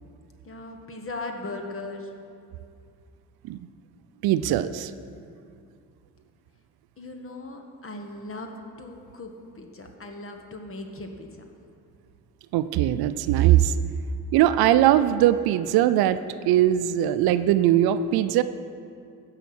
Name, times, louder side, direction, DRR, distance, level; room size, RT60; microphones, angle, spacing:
voice 1, 0.4-2.1 7.0-8.5 8.8-11.4, left 2 dB, 35° left, 4 dB, 1.6 m, -38 dB
voice 2, 4.2-4.9 12.5-13.7 14.3-16.2 16.5-18.4, right 12 dB, 80° right, 12 dB, 0.6 m, -20 dB
15.5 x 5.7 x 6.1 m, 2.4 s
cardioid pair, 75°, 37 cm